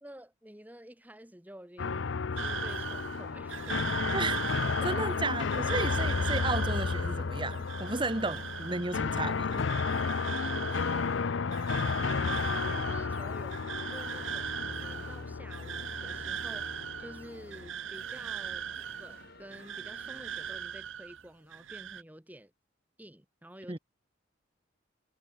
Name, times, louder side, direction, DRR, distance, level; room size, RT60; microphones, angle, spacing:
voice 1, 0.0-4.1 4.8-5.0 10.4-18.7 19.0-22.5 23.0-23.8, right 1 dB, 10° right, 1.8 m, -50 dB
sound 1, 1.8-17.7, left 5 dB, 70° left, 0.6 m, -33 dB
sound 2, 2.4-21.2 21.5-22.0, right 8 dB, 75° right, 0.7 m, -39 dB
sound 3, 3.1-20.6, left 2 dB, 50° left, 3.7 m, -54 dB
voice 2, 4.1-4.6 4.8-9.7 23.7-23.8, right 3 dB, 25° right, 1.1 m, -34 dB
head